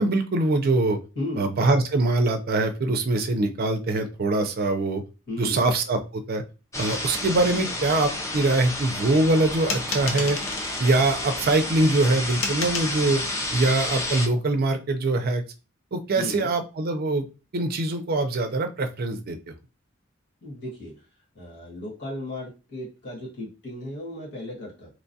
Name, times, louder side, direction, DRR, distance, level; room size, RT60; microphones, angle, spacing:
voice 1, 0.0-1.0 1.4-5.0 5.4-6.4 6.8-10.4 10.8-13.2 13.5-15.4 15.9-17.3 17.5-19.5, right 2 dB, 50° right, 6 dB, 0.5 m, -23 dB
voice 2, 1.1-1.5 5.3-5.7 16.1-16.5 20.4-21.0 21.3-24.9, left 1 dB, 60° left, -4 dB, 1.5 m, -35 dB
sound 1, 6.7-14.3, left 1 dB, 15° left, 0.4 m, -31 dB
sound 2, 9.7-10.9 12.4-12.9, left 3 dB, 75° left, 0.7 m, -31 dB
3.0 x 2.2 x 2.7 m, 0.31 s
head